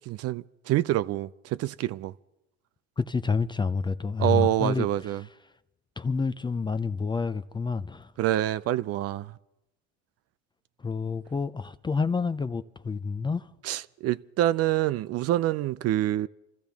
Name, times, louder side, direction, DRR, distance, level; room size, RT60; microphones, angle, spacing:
voice 1, 0.1-2.1 4.2-5.2 8.2-9.3 13.6-16.3, right 14 dB, 45° right, 0.5 m, -26 dB
voice 2, 3.0-5.2 6.0-8.1 10.8-13.5, left 4 dB, 15° left, 0.4 m, -29 dB
27.0 x 14.0 x 3.5 m
supercardioid pair, 100°, 34 cm